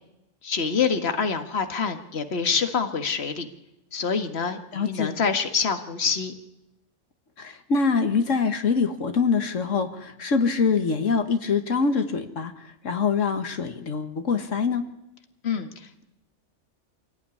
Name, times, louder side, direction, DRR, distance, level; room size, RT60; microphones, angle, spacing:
voice 1, 0.4-3.5 3.9-6.3 15.4-15.7, left 5 dB, 55° left, 7 dB, 1.9 m, -26 dB
voice 2, 4.7-5.1 7.4-12.5 12.8-14.8, left 5 dB, 90° left, 7 dB, 1.9 m, -24 dB
26.0 x 17.0 x 9.8 m, 0.88 s
omnidirectional pair, 1.3 m